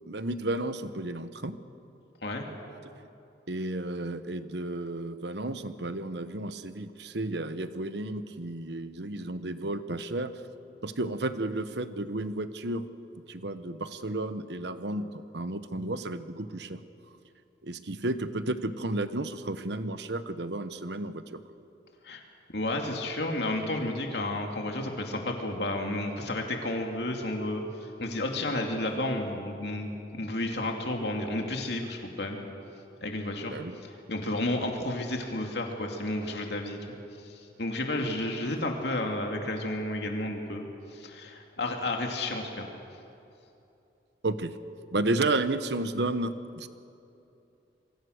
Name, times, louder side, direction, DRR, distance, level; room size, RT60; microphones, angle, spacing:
voice 1, 0.1-1.6 3.5-10.3 10.8-12.9 13.1-16.8 17.6-21.4 33.5-33.7 44.2-44.6 44.9-46.7, right 2 dB, 70° right, 11 dB, 1.1 m, -32 dB
voice 2, 22.5-32.4 33.0-33.5 33.8-36.8 37.2-42.6, left 1 dB, 70° left, 2 dB, 2.5 m, -32 dB
27.0 x 23.5 x 6.5 m, 2.8 s
head